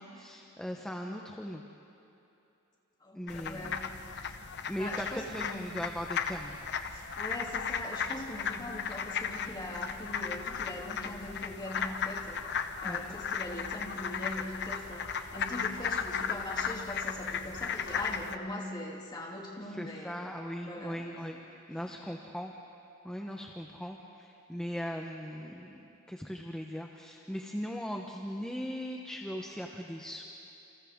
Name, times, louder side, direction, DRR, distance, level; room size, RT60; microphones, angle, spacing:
voice 1, 0.0-1.6 3.1-3.8 4.7-6.6 12.8-13.2 19.7-21.4 21.7-22.5 23.0-30.2, equal, 5° left, 1 dB, 0.9 m, -39 dB
voice 2, 3.0-3.9 4.8-5.6 6.9-12.4 12.8-20.3 20.7-21.2, left 1 dB, 20° left, -2 dB, 2.9 m, -41 dB
sound 1, 3.3-18.4, left 7 dB, 55° left, 0.9 m, -36 dB
29.0 x 28.5 x 3.7 m, 2.9 s
head